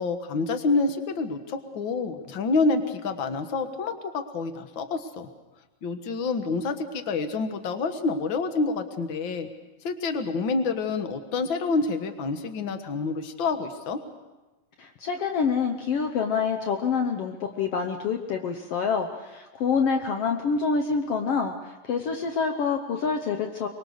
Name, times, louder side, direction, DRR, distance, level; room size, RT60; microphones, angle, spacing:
voice 1, 0.0-5.3 5.8-9.5 9.8-14.0, left 3 dB, 55° left, 7 dB, 1.4 m, -28 dB
voice 2, 14.8-23.7, left 5 dB, 75° left, 4 dB, 1.3 m, -27 dB
24.0 x 22.5 x 6.5 m, 1.1 s
omnidirectional pair, 4.3 m